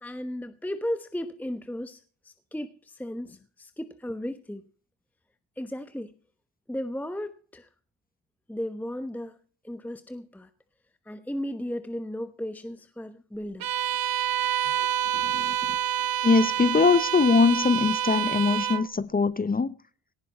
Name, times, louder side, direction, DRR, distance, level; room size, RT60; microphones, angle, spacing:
voice 1, 0.0-4.6 5.6-6.1 6.7-7.7 8.5-9.4 9.6-10.5 11.1-13.7 14.6-15.8, left 1 dB, 5° left, 1.1 m, -35 dB
Bowed string instrument, 13.6-18.9, right 10 dB, 50° right, 0.9 m, -27 dB
voice 2, 16.2-19.7, left 4 dB, 20° left, 0.7 m, -21 dB
18.0 x 11.0 x 4.2 m
cardioid pair, 85°, 44 cm